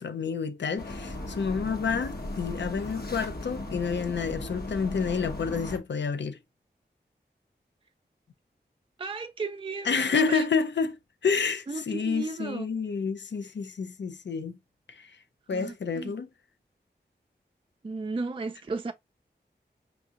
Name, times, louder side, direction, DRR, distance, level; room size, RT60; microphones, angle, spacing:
voice 1, 0.0-6.4 9.9-11.0 11.2-14.6 14.9-15.1 15.5-16.3, left 5 dB, 80° left, 0.5 m, -29 dB
sound 1, 0.8-5.8, left 1 dB, 60° left, 1.1 m, -37 dB
voice 2, 9.0-10.5 11.7-12.7 15.5-16.1 17.8-18.9, right 4 dB, 30° right, 0.4 m, -35 dB
5.8 x 2.7 x 2.4 m
wide cardioid pair, 45°, 18 cm